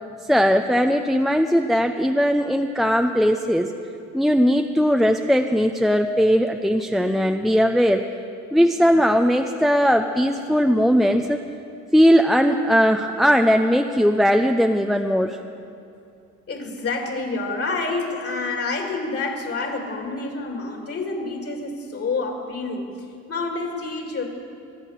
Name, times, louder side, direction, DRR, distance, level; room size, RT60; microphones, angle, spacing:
voice 1, 0.3-3.7 4.1-8.0 8.5-11.4 11.9-15.4, equal, ahead, 5 dB, 0.6 m, -19 dB
voice 2, 16.5-22.9 23.3-24.2, left 3 dB, 50° left, 1 dB, 2.8 m, -28 dB
23.5 x 8.3 x 6.6 m, 2.6 s
cardioid pair, 90°, 30 cm